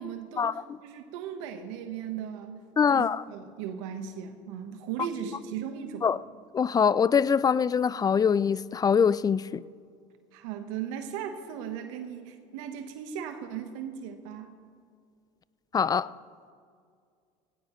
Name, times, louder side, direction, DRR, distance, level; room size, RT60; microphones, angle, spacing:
voice 1, 0.0-2.6 2.9-6.1 10.3-14.5, right 8 dB, 75° right, 1.2 m, -37 dB
voice 2, 2.8-3.2 6.0-6.2 6.5-9.6 15.7-16.1, left 6 dB, 25° left, 0.3 m, -23 dB
17.5 x 17.0 x 3.1 m
hypercardioid pair, 85°, 17 cm